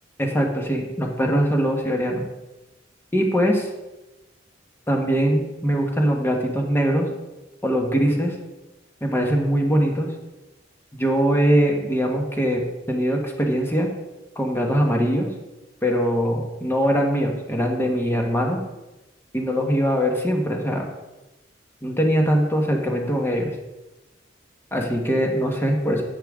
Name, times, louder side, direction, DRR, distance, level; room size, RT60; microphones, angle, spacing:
voice 1, 0.2-2.2 3.1-3.7 4.9-7.1 7.6-8.3 9.0-10.1 10.9-13.9 14.3-15.3 15.8-18.6 19.3-20.9 21.8-23.5 24.7-26.0, equal, 10° left, 1 dB, 1.4 m, -22 dB
9.9 x 8.8 x 3.7 m, 1.1 s
head